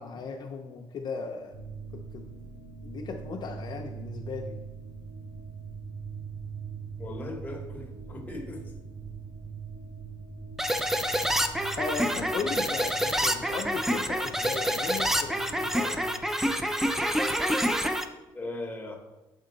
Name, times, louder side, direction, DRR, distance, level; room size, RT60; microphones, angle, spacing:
voice 1, 0.0-1.6 1.9-2.3 2.8-4.6 11.8-16.1, left 5 dB, 45° left, 0.5 m, -37 dB
sound 1, 1.5-17.4, right 5 dB, 85° right, 1.7 m, -43 dB
voice 2, 7.0-8.7 18.3-19.0, left 2 dB, 15° left, 1.0 m, -38 dB
sound 2, 10.6-18.0, equal, 5° right, 0.4 m, -27 dB
6.7 x 4.4 x 3.8 m
cardioid pair, 110°, 10 cm